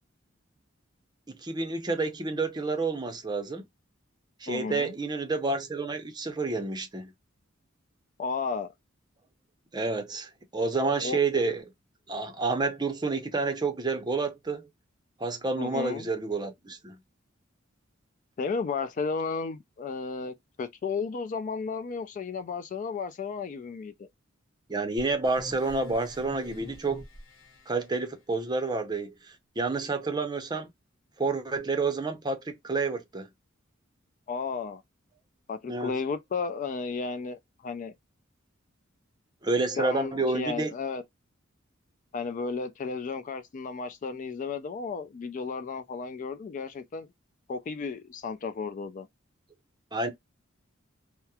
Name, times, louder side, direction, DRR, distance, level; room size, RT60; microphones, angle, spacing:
voice 1, 1.3-3.6 4.4-7.1 9.7-11.6 12.1-14.7 15.2-17.0 24.7-27.0 27.7-30.7 31.2-33.3 35.7-35.9 39.4-40.7 49.9-50.1, right 3 dB, 20° right, 0.6 m, -29 dB
voice 2, 4.5-5.0 8.2-8.7 11.0-11.4 15.6-16.1 18.4-24.1 34.3-34.8 35.5-37.9 39.8-41.0 42.1-47.1 47.5-49.1, left 5 dB, 40° left, 0.3 m, -33 dB
sound 1, 25.0-27.7, left 1 dB, 75° left, 1.0 m, -46 dB
2.9 x 2.0 x 2.3 m
head